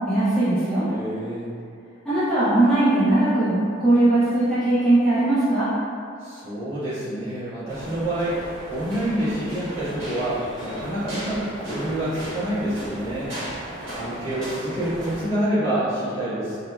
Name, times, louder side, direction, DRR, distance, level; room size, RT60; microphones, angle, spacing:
voice 1, 0.1-0.9 2.1-5.7, right 2 dB, ahead, -14 dB, 0.5 m, -19 dB
voice 2, 0.8-1.5 6.2-13.3 13.9-16.6, right 1 dB, 30° right, -15 dB, 1.4 m, -27 dB
sound 1, 7.7-15.3, equal, 70° right, 1.1 m, -36 dB
4.1 x 2.1 x 2.2 m, 2.4 s
head